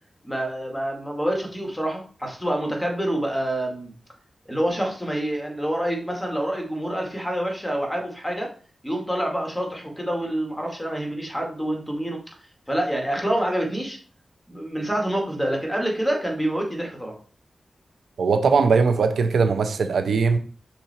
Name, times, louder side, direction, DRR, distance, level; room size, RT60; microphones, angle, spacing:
voice 1, 0.2-3.9 4.5-8.5 8.8-12.2 12.7-14.0 14.5-17.2, right 1 dB, 5° left, 2.1 m, -27 dB
voice 2, 18.2-20.4, right 5 dB, 90° right, 0.6 m, -20 dB
5.9 x 4.1 x 4.2 m
wide cardioid pair, 80°, 0 cm